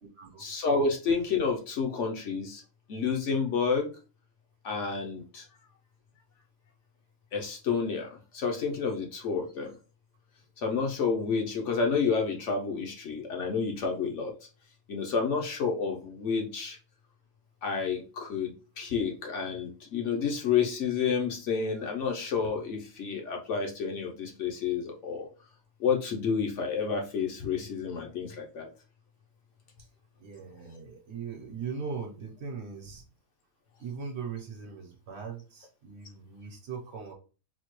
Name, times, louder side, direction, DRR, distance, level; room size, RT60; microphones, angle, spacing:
voice 1, 0.4-2.6 2.9-3.9 4.6-5.4 7.3-9.7 10.6-14.3 14.9-16.8 17.6-25.3 25.8-28.7, left 5 dB, 65° left, 2 dB, 0.9 m, -30 dB
voice 2, 30.2-33.0 33.8-37.1, right 5 dB, 55° right, 1 dB, 1.0 m, -39 dB
4.2 x 2.2 x 3.0 m, 0.35 s
omnidirectional pair, 1.5 m